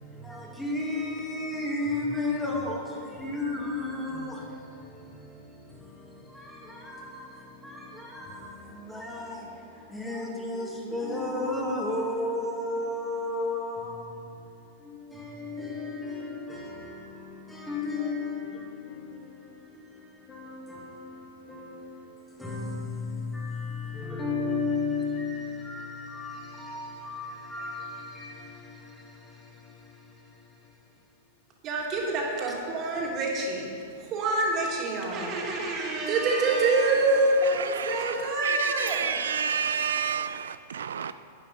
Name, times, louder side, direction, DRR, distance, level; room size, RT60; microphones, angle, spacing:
voice 1, 0.0-30.7, left 2 dB, 5° left, 2.2 m, -34 dB
voice 2, 31.6-33.7 34.0-40.0, right 2 dB, 40° right, 2.7 m, -27 dB
voice 3, 37.4-41.1, right 7 dB, 85° right, 0.3 m, -30 dB
11.0 x 9.1 x 5.6 m
hypercardioid pair, 120°, 0 cm